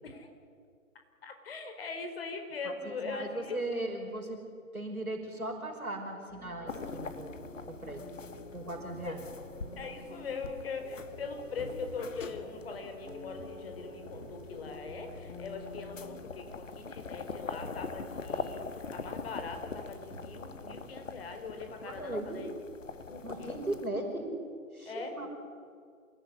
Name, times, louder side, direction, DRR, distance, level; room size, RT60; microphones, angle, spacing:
voice 1, 1.2-3.6 9.0-9.1 9.7-18.6 18.9-22.5 23.1-23.6 24.9-25.3, left 4 dB, 45° left, 6 dB, 4.6 m, -41 dB
voice 2, 2.6-4.4 4.7-8.1 8.5-9.2 21.8-22.4 23.2-24.3 24.7-25.3, right 2 dB, 85° right, 2 dB, 5.8 m, -38 dB
sound 1, 6.3-16.6, left 2 dB, 15° left, 4.3 m, -49 dB
sound 2, 6.7-23.9, left 4 dB, 60° left, 2.0 m, -44 dB
sound 3, 8.9-11.1 11.6-12.4 13.1-17.2 17.6-18.4 19.1-20.9, right 3 dB, 45° right, 2.1 m, -53 dB
27.5 x 19.0 x 9.9 m, 2.2 s
figure-of-eight pair, 135°, 42 cm